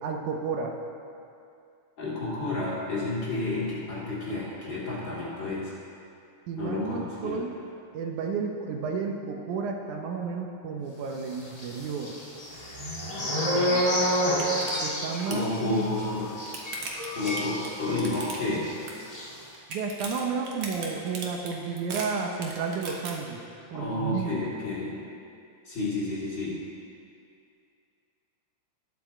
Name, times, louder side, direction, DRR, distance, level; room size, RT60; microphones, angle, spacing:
voice 1, 0.0-0.7 6.5-7.5 7.9-12.2 13.4-13.9 14.8-16.0 19.7-23.4 23.7-24.5, right 5 dB, 75° right, 2 dB, 2.2 m, -32 dB
voice 2, 2.0-5.7 6.6-7.4 15.3-16.3 17.1-18.7 23.7-25.0 25.6-26.6, left 2 dB, 40° left, -7 dB, 3.1 m, -30 dB
sound 1, 11.5-18.2 18.5-18.7 19.0-19.3, equal, 20° left, 1.0 m, -29 dB
sound 2, 13.8-13.9 14.2-14.7 15.0-15.5 16.1-18.6 18.9-19.3 19.5-23.1, right 4 dB, 55° right, 1.7 m, -38 dB
19.5 x 7.1 x 4.3 m, 2.5 s
omnidirectional pair, 3.6 m